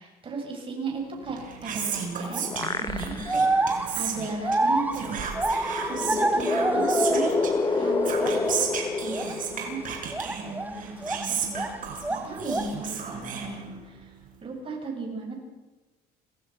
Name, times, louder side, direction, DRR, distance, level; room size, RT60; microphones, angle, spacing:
voice 1, 0.0-2.4 2.8-3.5 4.0-5.3 5.8-8.7 9.0-9.2 9.5-9.8 10.2-11.7 12.1-14.1 14.4-15.4, right 3 dB, 30° right, 0 dB, 7.7 m, -36 dB
Whispering, 1.2-14.1, right 7 dB, 55° right, 5.6 m, -34 dB
sound 1, 1.9-3.5 4.0-4.1 5.3-10.1, left 4 dB, 25° left, 1.6 m, -28 dB
sound 2, 2.3-2.7 3.3-7.6 7.9-8.7 9.1-9.3 10.1-11.8 12.0-12.8, right 2 dB, 10° right, 1.5 m, -27 dB
27.0 x 18.0 x 6.2 m, 1.2 s
cardioid pair, 110°, 17 cm